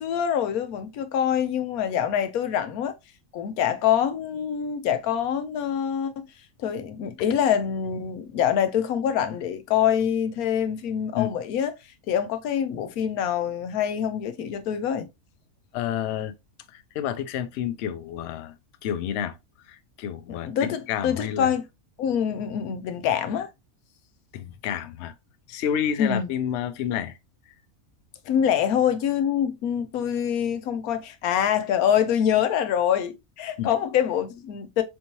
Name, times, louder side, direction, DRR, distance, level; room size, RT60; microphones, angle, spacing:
voice 1, 0.0-2.9 3.3-6.2 6.6-11.7 12.1-15.1 20.3-21.6 22.0-23.5 26.0-26.3 28.2-34.8, left 9 dB, 90° left, 1.1 m, -25 dB
voice 2, 15.7-16.3 16.7-18.6 18.8-19.4 19.6-21.5 24.3-25.2 25.5-27.2 27.5-27.6 33.6-33.7, left 9 dB, 65° left, 0.7 m, -30 dB
4.4 x 2.8 x 2.9 m
omnidirectional pair, 1.5 m